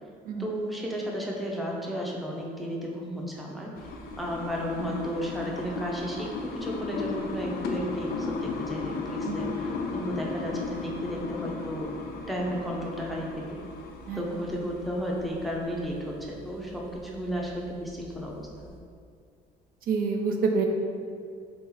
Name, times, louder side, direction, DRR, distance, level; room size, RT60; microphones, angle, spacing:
voice 1, 0.4-3.9 4.2-11.9 12.3-13.6 14.1-18.7, equal, ahead, -3 dB, 0.6 m, -33 dB
sound 1, 3.7-18.8, left 4 dB, 65° left, 0.5 m, -36 dB
voice 2, 9.3-9.6 14.1-14.2 19.9-20.6, right 5 dB, 60° right, 2 dB, 0.4 m, -27 dB
3.7 x 2.8 x 3.8 m, 2.3 s
cardioid pair, 110°, 17 cm